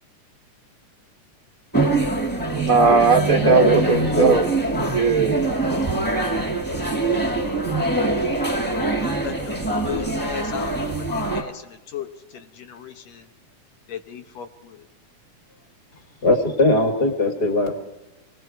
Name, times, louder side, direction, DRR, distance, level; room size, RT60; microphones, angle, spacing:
sound 1, 1.7-11.4, right 2 dB, 5° left, 1.5 m, -24 dB
voice 1, 2.5-4.4 4.8-5.5, right 4 dB, 75° right, 5 dB, 0.7 m, -18 dB
voice 2, 3.3-4.4 16.2-17.7, left 2 dB, 35° left, 3 dB, 3.0 m, -20 dB
voice 3, 9.0-13.3 13.9-14.9 15.5-15.6, left 8 dB, 70° left, 6 dB, 2.1 m, -36 dB
29.0 x 19.5 x 4.6 m, 1.0 s
omnidirectional pair, 3.3 m